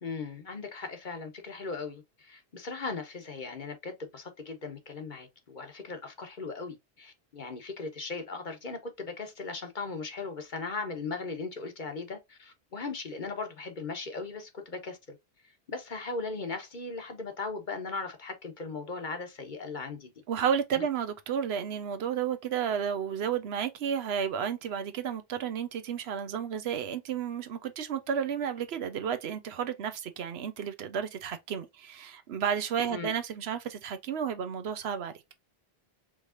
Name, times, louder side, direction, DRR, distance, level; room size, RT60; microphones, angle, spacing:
voice 1, 0.0-15.2 15.7-20.1 20.7-20.8 32.9-33.1, left 4 dB, 50° left, 1.1 m, -38 dB
voice 2, 20.3-35.1, right 8 dB, 80° right, 0.9 m, -32 dB
4.9 x 3.2 x 2.5 m
omnidirectional pair, 1.1 m